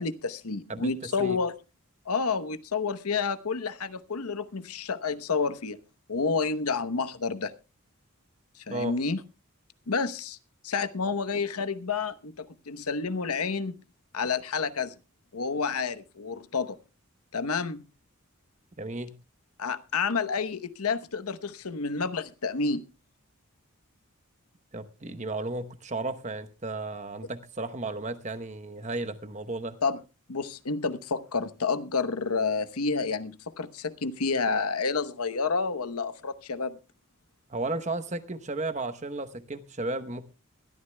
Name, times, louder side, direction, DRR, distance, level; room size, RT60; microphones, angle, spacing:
voice 1, 0.0-1.5 2.1-5.8 6.1-7.5 8.6-9.2 9.9-10.4 10.6-13.7 14.1-14.9 15.3-16.8 17.3-17.8 19.6-22.8 29.8-30.0 30.3-36.8, left 4 dB, 90° left, 0.9 m, -29 dB
voice 2, 0.7-1.4 8.7-9.0 18.8-19.1 24.7-29.8 37.5-40.2, right 2 dB, 30° right, 0.9 m, -34 dB
22.0 x 13.0 x 2.2 m
head